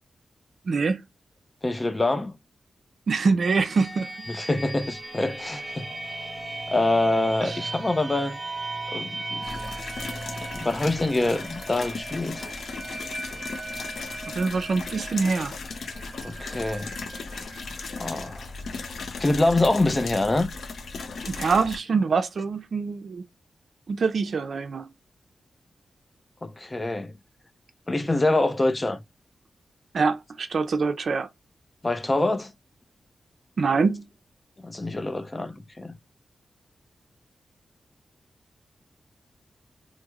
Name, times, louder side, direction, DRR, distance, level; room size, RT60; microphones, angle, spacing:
voice 1, 0.7-1.0 3.1-4.1 7.4-7.6 14.3-15.6 21.2-23.2 23.9-24.9 29.9-31.3 33.6-34.1, right 4 dB, 65° right, 0.5 m, -24 dB
voice 2, 1.6-2.4 4.3-5.9 6.7-8.4 8.9-9.7 10.5-12.5 16.2-16.9 18.0-18.5 19.2-20.5 26.4-27.1 27.9-29.0 31.8-32.5 34.6-35.9, left 2 dB, 25° left, 0.5 m, -25 dB
sound 1, 3.4-19.0, right 2 dB, 25° right, 0.8 m, -37 dB
sound 2, 9.4-21.8, left 4 dB, 80° left, 0.5 m, -37 dB
3.1 x 2.0 x 3.5 m
wide cardioid pair, 95°, 0 cm